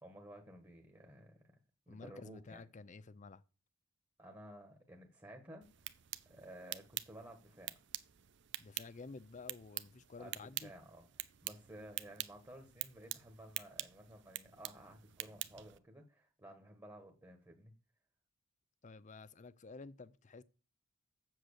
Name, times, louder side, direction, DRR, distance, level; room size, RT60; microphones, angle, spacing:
voice 1, 0.0-1.6 1.9-2.6 4.2-5.7 6.2-7.7 10.2-17.7, right 1 dB, 15° right, 1.4 m, -54 dB
voice 2, 1.9-3.4 8.6-10.7 18.8-20.4, left 3 dB, 35° left, 0.5 m, -51 dB
sound 1, 5.6-15.8, right 15 dB, 60° right, 0.6 m, -47 dB
7.7 x 7.7 x 6.5 m
head